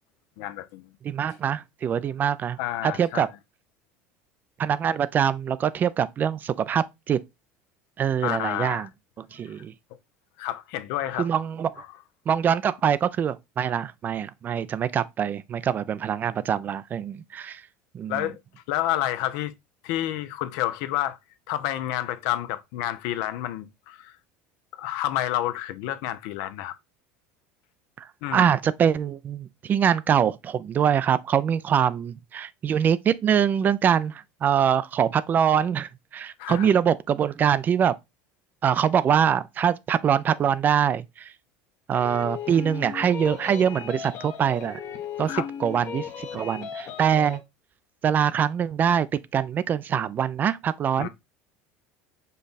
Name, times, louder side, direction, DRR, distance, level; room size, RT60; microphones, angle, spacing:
voice 1, 0.4-0.9 2.6-3.3 8.2-8.9 10.4-11.3 13.6-13.7 18.1-18.4 18.7-19.5 19.8-21.2 21.5-24.1 24.8-26.7 28.2-28.5 36.4-36.7 45.3-45.5 51.0-51.1, left 13 dB, 70° left, 0.5 m, -29 dB
voice 2, 1.0-3.3 4.6-7.2 8.0-8.9 9.2-9.7 11.2-11.8 12.3-17.6 17.9-18.3 28.0-37.9 38.6-41.3 41.9-44.8 45.2-47.4 48.0-49.1 49.3-51.1, right 8 dB, 30° right, 0.3 m, -24 dB
sound 1, 41.9-47.4, left 7 dB, 50° left, 0.9 m, -36 dB
5.3 x 2.3 x 3.9 m
supercardioid pair, 115°, 6 cm